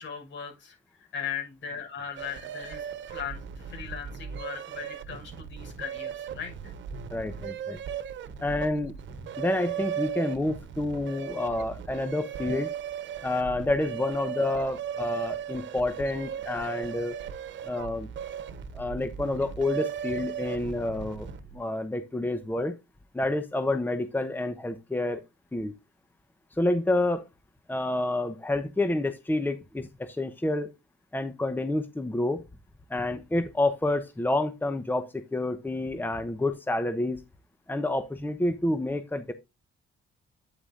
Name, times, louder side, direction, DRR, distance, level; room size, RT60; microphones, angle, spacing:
voice 1, 0.0-6.5, left 7 dB, 70° left, 5.9 m, -38 dB
sound 1, 2.2-21.6, right 8 dB, 70° right, 1.1 m, -37 dB
voice 2, 7.1-7.8 8.4-8.9 9.4-12.7 13.2-17.2 17.6-18.1 18.7-21.3 21.5-22.8 23.1-25.2 25.5-25.7 26.6-27.2 27.7-30.7 31.1-32.4 32.9-37.2 37.7-39.3, left 2 dB, 10° left, 0.9 m, -29 dB
9.1 x 8.0 x 2.5 m
cardioid pair, 90°, 20 cm